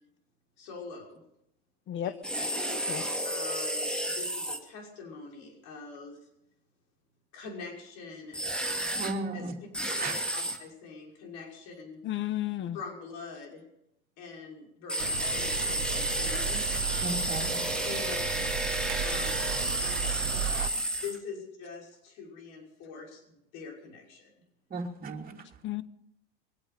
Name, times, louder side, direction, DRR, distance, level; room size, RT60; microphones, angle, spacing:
voice 1, 0.6-1.2 2.0-2.5 3.2-6.2 7.3-8.4 9.3-9.5 10.0-12.0 12.7-13.6 14.2-16.6 17.8-18.2 19.0-19.3 19.6-19.7 21.0-24.3, left 5 dB, 65° left, 6.0 m, -44 dB
sound 1, 2.2-4.6 8.3-9.1 9.7-10.6 14.9-21.2, right 1 dB, 5° left, 2.3 m, -31 dB
voice 2, 9.0-9.5 10.0-10.1 17.0-17.6 20.5-20.7 24.7-25.3, right 3 dB, 30° right, 3.1 m, -35 dB
voice 3, 12.0-12.8 25.6-25.8, left 13 dB, 40° left, 1.0 m, -32 dB
sound 2, 15.0-20.7, right 12 dB, 65° right, 0.9 m, -35 dB
23.5 x 8.9 x 6.8 m
supercardioid pair, 105°, 30 cm